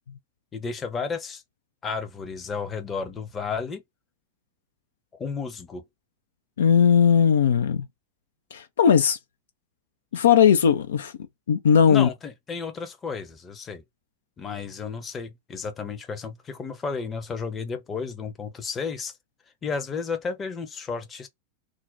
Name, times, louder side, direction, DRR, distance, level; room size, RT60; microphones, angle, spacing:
voice 1, 0.5-1.4 1.8-3.8 5.2-5.8 11.9-13.8 14.4-19.1 19.6-21.3, left 5 dB, 20° left, 0.7 m, -32 dB
voice 2, 6.6-7.9 8.5-9.2 10.1-11.1 11.5-12.1, left 7 dB, 65° left, 0.3 m, -18 dB
2.5 x 2.1 x 3.8 m
figure-of-eight pair, 90°, 0 cm